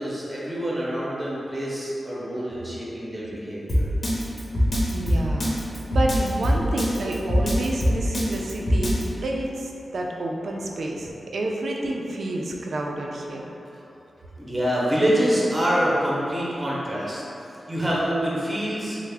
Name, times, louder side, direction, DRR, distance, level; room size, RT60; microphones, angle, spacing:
voice 1, 0.0-3.8 13.7-13.8 14.4-17.2 17.5-19.0, equal, 20° right, -6 dB, 0.6 m, -26 dB
Drum kit, 3.7-9.0, equal, 55° left, 0.7 m, -22 dB
voice 2, 4.9-5.6 5.9-9.0 9.2-13.4, right 1 dB, 75° right, 0 dB, 0.3 m, -29 dB
3.3 x 2.0 x 3.3 m, 2.8 s
wide cardioid pair, 110°, 0 cm